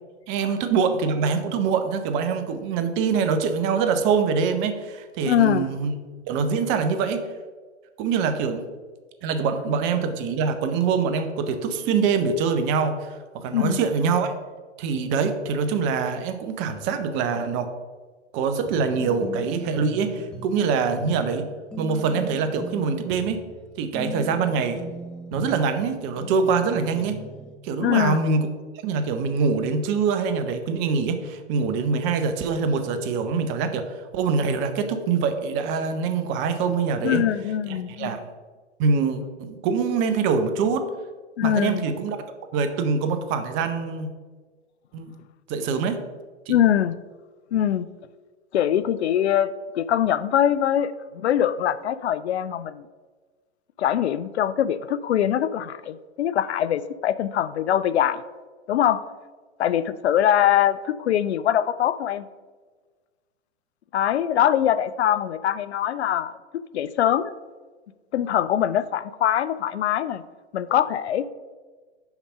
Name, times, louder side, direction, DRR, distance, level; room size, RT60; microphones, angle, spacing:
voice 1, 0.3-5.9 6.3-7.2 8.0-8.6 9.2-14.3 14.8-17.7 18.3-21.5 21.8-23.4 23.8-24.8 25.3-27.2 27.6-28.5 28.8-37.2 37.7-38.2 38.8-40.8 41.4-42.2 42.5-44.1 44.9-45.1 45.5-46.0 46.5-46.6, right 5 dB, 30° right, 8 dB, 0.8 m, -24 dB
voice 2, 5.2-5.7 13.5-13.8 27.8-28.2 37.0-38.1 41.4-41.9 46.5-47.0 47.5-47.9 48.5-52.9 53.8-58.2 58.7-59.0 59.6-62.3 63.9-67.3 68.1-70.2 70.5-71.3, left 10 dB, 65° left, 15 dB, 0.5 m, -23 dB
sound 1, 18.7-27.5, equal, ahead, 0.5 m, -38 dB
5.8 x 5.7 x 5.5 m, 1.4 s
hypercardioid pair, 115°, 35 cm